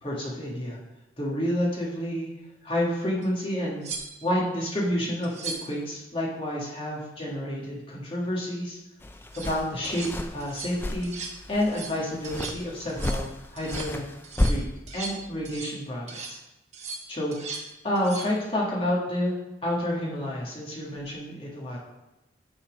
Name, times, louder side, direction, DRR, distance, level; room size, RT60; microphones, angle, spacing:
voice 1, 0.0-0.8 1.2-2.3 2.6-3.9 4.2-8.8 9.3-10.1 10.3-11.1 11.5-14.0 14.4-14.6 14.9-16.4 17.1-17.5 17.8-19.4 19.6-21.8, equal, 30° left, -4 dB, 1.7 m, -29 dB
sound 1, 3.2-3.3 3.8-4.4 5.2-5.8 9.1-9.5 9.8-10.1 10.4-10.8 11.0-11.4 11.6-12.0 12.2-12.6 12.9-13.2 13.6-13.9 14.2-15.8 16.1-16.4 16.7-17.7 17.9-18.3 20.9-21.1, right 4 dB, 35° right, 1.1 m, -38 dB
sound 2, 9.0-15.6, left 1 dB, 10° left, 0.4 m, -33 dB
8.9 x 4.4 x 5.1 m, 0.97 s
head